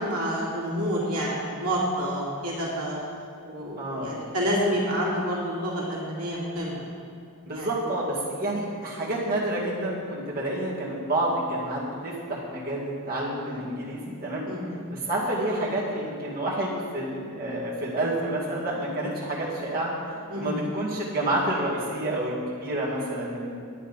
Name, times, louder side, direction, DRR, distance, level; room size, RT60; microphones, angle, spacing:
voice 1, 0.0-3.0 3.5-6.9 7.5-7.7 8.4-8.6 14.5-14.9 20.3-20.5, equal, 75° right, -5 dB, 2.5 m, -28 dB
voice 2, 3.8-4.2 7.4-14.4 14.9-23.5, right 1 dB, 45° right, -7 dB, 2.3 m, -29 dB
10.5 x 9.4 x 5.4 m, 2.3 s
head